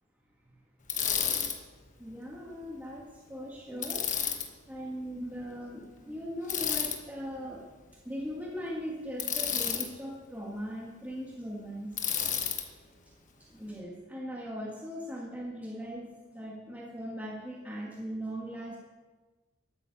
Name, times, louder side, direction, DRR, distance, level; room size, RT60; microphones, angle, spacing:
Bicycle, 0.9-1.6 3.8-4.5 6.5-7.0 9.2-9.9 12.0-12.6, left 8 dB, 35° left, 1.2 m, -30 dB
voice 1, 2.0-4.1 4.7-7.6 8.0-11.9 13.5-18.8, equal, 10° right, -3 dB, 1.7 m, -39 dB
12.5 x 9.3 x 7.0 m, 1.2 s
head